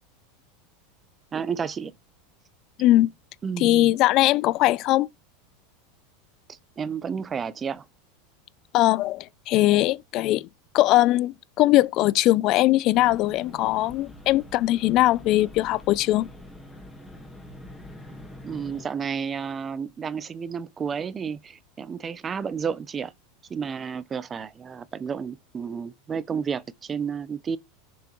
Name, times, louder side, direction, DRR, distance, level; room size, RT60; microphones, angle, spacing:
voice 1, 1.3-1.9 3.4-4.0 6.5-7.8 18.4-23.1 23.5-27.6, right 6 dB, 20° right, 0.4 m, -31 dB
voice 2, 2.8-3.1 3.6-5.1 8.7-10.5 10.7-16.3, left 16 dB, 40° left, 0.3 m, -20 dB
sound 1, 12.9-18.9, left 1 dB, 5° left, 1.5 m, -44 dB
7.0 x 5.9 x 3.0 m
supercardioid pair, 150°, 0 cm